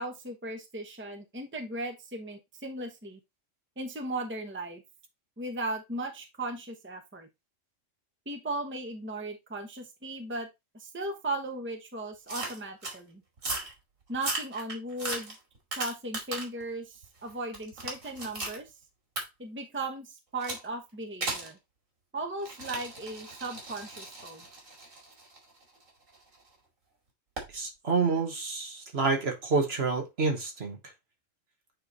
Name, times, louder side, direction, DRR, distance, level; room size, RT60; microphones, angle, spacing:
voice 1, 0.0-3.2 3.8-4.8 5.4-7.3 8.3-10.5 10.7-13.2 14.1-15.3 15.8-18.7 19.4-21.6 22.1-24.4, right 2 dB, 10° right, 1.0 m, -37 dB
sound 1, 12.3-13.0 13.4-13.7 14.1-16.6 17.0-18.6 19.2-19.3 20.4-20.7 21.2-21.5 22.4-26.4 27.4-27.5, right 2 dB, 90° right, 2.8 m, -37 dB
voice 2, 27.5-30.8, right 4 dB, 55° right, 1.6 m, -28 dB
8.6 x 3.2 x 3.9 m
omnidirectional pair, 1.3 m